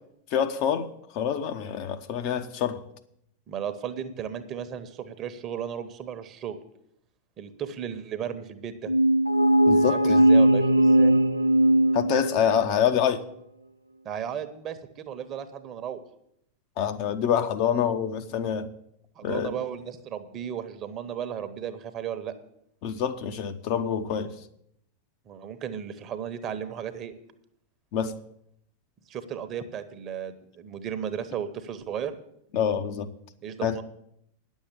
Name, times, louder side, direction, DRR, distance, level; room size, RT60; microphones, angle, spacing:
voice 1, 0.3-2.8 9.7-10.2 11.9-13.2 16.8-18.7 19.2-19.5 22.8-24.3 27.9-28.1 32.5-33.1 33.6-33.8, left 8 dB, 45° left, 0.8 m, -26 dB
voice 2, 3.5-6.6 7.4-8.9 9.9-11.1 14.0-16.0 19.2-22.3 25.3-27.1 29.1-32.1 33.4-33.8, right 8 dB, 30° right, 1.0 m, -35 dB
sound 1, 8.9-12.6, right 1 dB, 85° right, 0.5 m, -19 dB
10.0 x 7.3 x 8.4 m
figure-of-eight pair, 90°, 0 cm